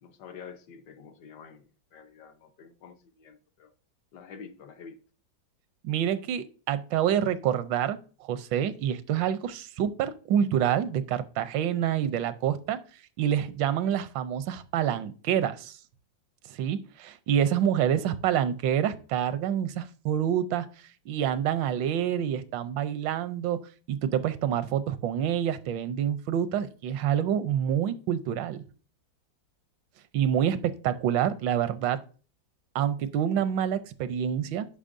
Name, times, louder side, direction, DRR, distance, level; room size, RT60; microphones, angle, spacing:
voice 1, 0.0-3.7 4.1-5.0, left 6 dB, 65° left, 1.3 m, -48 dB
voice 2, 5.8-12.8 13.2-15.8 16.5-20.7 21.1-23.6 23.9-28.6 30.1-32.0 32.7-34.7, right 9 dB, 80° right, 1.3 m, -27 dB
9.9 x 5.7 x 2.5 m
omnidirectional pair, 2.0 m